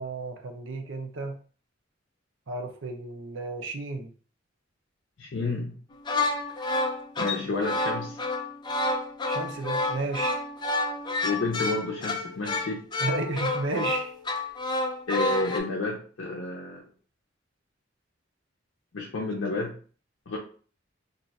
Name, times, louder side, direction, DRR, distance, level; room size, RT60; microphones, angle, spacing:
voice 1, 0.0-1.4 2.5-4.1 9.2-10.3 13.0-14.1, right 3 dB, 75° right, 5 dB, 0.6 m, -32 dB
voice 2, 5.2-5.8 7.2-8.2 11.2-12.9 15.1-16.9 18.9-19.8 20.3-20.4, left 2 dB, 80° left, -2 dB, 0.6 m, -30 dB
sound 1, 5.9-15.6, left 2 dB, 25° left, 0.4 m, -29 dB
2.6 x 2.3 x 4.0 m, 0.42 s
head